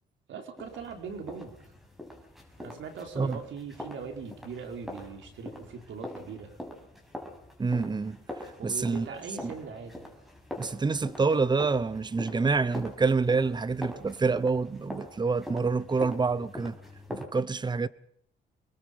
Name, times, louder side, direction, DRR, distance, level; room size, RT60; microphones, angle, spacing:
voice 1, 0.3-1.6 2.6-6.5 8.6-9.9, right 6 dB, 70° right, 4.4 m, -40 dB
sound 1, 0.6-17.2, left 1 dB, ahead, 5.9 m, -44 dB
voice 2, 7.6-8.2 8.6-9.5 10.6-16.8 17.1-17.9, right 4 dB, 20° right, 0.9 m, -27 dB
26.0 x 21.0 x 5.2 m
cardioid pair, 90°, 20 cm